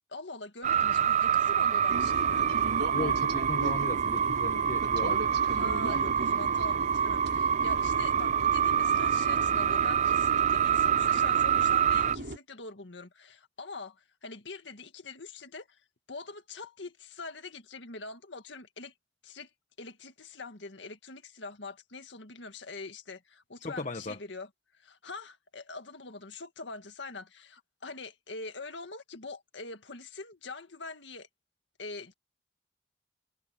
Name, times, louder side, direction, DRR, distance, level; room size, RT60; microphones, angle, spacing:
voice 1, 0.1-2.5 5.5-15.8 16.1-18.9 19.2-19.5 19.8-24.5 24.8-31.3 31.8-32.1, left 3 dB, 75° left, 1.9 m, -44 dB
sound 1, 0.6-12.2, right 8 dB, 40° right, 0.4 m, -26 dB
sound 2, 1.9-12.4, right 1 dB, 65° right, 3.2 m, -37 dB
voice 2, 2.9-5.2 23.6-24.2, left 2 dB, 40° left, 1.5 m, -36 dB
head